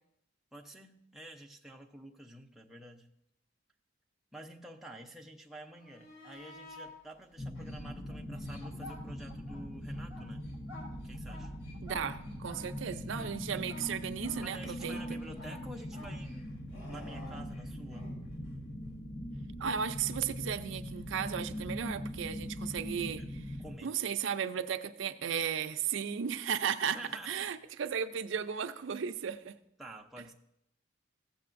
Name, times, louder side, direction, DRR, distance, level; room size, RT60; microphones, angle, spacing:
voice 1, 0.5-3.1 4.3-10.5 11.0-11.5 14.4-16.6 16.9-18.1 23.2-23.3 23.6-24.0 26.9-27.5 29.8-30.3, right 1 dB, ahead, 0 dB, 0.6 m, -50 dB
sound 1, 5.7-6.9 7.5-9.6 9.9-18.1 20.9-21.0, left 2 dB, 85° left, 3.3 m, -50 dB
sound 2, 7.4-23.8, equal, 30° left, 0.7 m, -41 dB
voice 2, 11.8-15.0 19.6-23.2 23.8-27.0 27.3-29.5, right 7 dB, 75° right, 9 dB, 0.4 m, -35 dB
14.5 x 7.7 x 2.5 m, 0.77 s
head